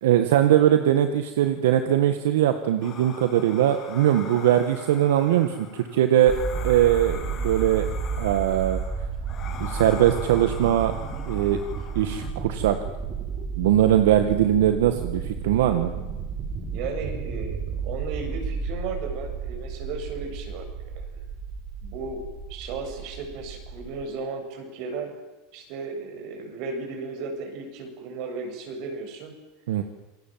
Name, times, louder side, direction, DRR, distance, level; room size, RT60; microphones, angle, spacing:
voice 1, 0.0-6.3 6.6-7.9 8.2-8.8 9.6-10.9 11.3-11.6 12.0-12.8 13.6-15.9 29.7-29.8, right 11 dB, 85° right, 8 dB, 1.9 m, -21 dB
sound 1, 2.8-12.3, left 6 dB, 35° left, 6.4 m, -41 dB
sound 2, 6.3-24.0, right 5 dB, 30° right, 4.3 m, -32 dB
voice 2, 16.7-20.7 20.9-21.2 21.8-25.1 25.5-29.3, right 4 dB, 55° right, 5 dB, 7.4 m, -35 dB
27.5 x 21.0 x 7.7 m, 1.1 s
supercardioid pair, 145°, 0 cm